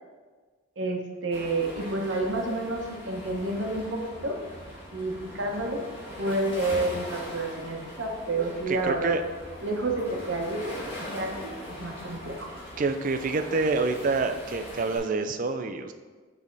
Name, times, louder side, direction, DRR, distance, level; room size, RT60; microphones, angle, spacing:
voice 1, 0.8-4.4 4.9-5.8 6.2-9.1 9.6-10.7 11.1-11.5 11.8-12.5, right 2 dB, 60° right, 1 dB, 0.9 m, -29 dB
Waves surf, 1.3-15.0, equal, 25° left, 1.6 m, -41 dB
voice 2, 8.7-9.2 12.8-15.9, right 3 dB, 40° right, 7 dB, 0.3 m, -27 dB
7.2 x 3.5 x 3.9 m, 1.4 s
head